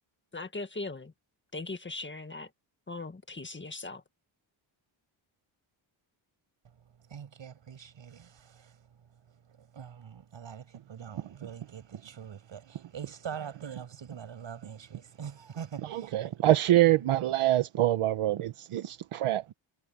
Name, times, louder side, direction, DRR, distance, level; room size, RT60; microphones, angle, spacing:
voice 1, 0.3-1.1 1.5-2.5 2.9-4.0, left 3 dB, 25° left, 1.8 m, -39 dB
voice 2, 7.1-9.0 9.3-16.3 17.0-17.1, right 8 dB, 65° right, 6.9 m, -44 dB
voice 3, 15.9-19.5, right 14 dB, 80° right, 1.1 m, -25 dB
cardioid pair, 95°, 49 cm